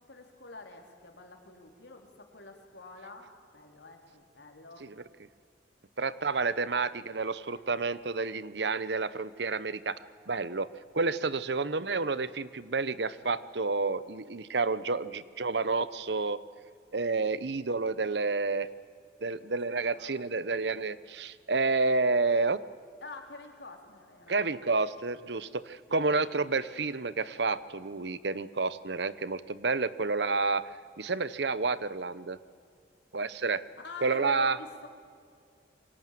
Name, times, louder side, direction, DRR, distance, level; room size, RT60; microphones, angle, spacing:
voice 1, 0.0-4.9 6.7-7.1 7.4-7.7 19.4-19.5 19.8-20.6 23.0-24.5 25.9-26.1 33.8-34.9, left 3 dB, 75° left, 3 dB, 4.0 m, -47 dB
voice 2, 6.0-10.0 10.3-10.7 10.9-16.4 16.9-18.7 19.2-22.6 24.3-30.7 31.0-32.4 33.1-33.6 34.0-34.6, right 3 dB, 70° right, 16 dB, 0.9 m, -30 dB
27.5 x 24.5 x 7.7 m, 2.2 s
head